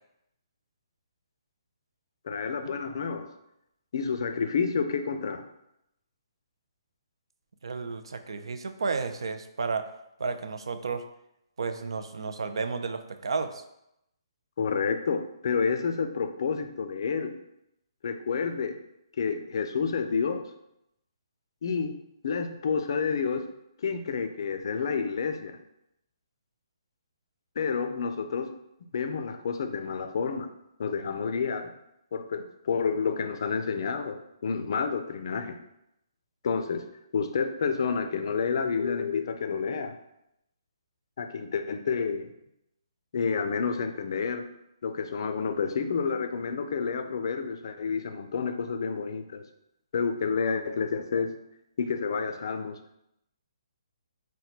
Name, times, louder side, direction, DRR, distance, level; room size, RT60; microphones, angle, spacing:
voice 1, 2.3-3.3 3.9-5.5 14.6-17.4 18.0-18.7 19.2-20.5 21.6-21.9 22.2-23.5 23.8-25.6 27.6-28.5 28.9-30.5 30.8-31.7 32.1-35.6 36.4-36.9 37.1-40.0 41.2-42.3 43.1-44.5 44.8-49.4 49.9-51.3 51.8-52.8, left 5 dB, 60° left, 7 dB, 0.4 m, -29 dB
voice 2, 7.6-9.9 10.2-11.0 11.6-13.6, right 4 dB, 75° right, 8 dB, 0.4 m, -32 dB
3.0 x 2.2 x 4.1 m, 0.81 s
hypercardioid pair, 145°, 3 cm